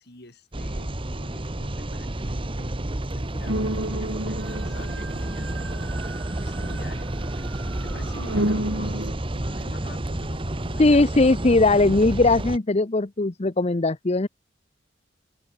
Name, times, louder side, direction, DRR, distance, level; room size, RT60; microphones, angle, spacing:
voice 1, 0.0-2.8 3.1-11.1, left 2 dB, 60° left, 7.6 m, -46 dB
sound 1, 0.5-12.6, right 1 dB, 30° right, 1.2 m, -30 dB
sound 2, 3.5-7.0 7.4-9.1, right 1 dB, 90° right, 4.2 m, -30 dB
voice 2, 10.8-14.3, left 2 dB, 35° left, 0.8 m, -19 dB
open air
head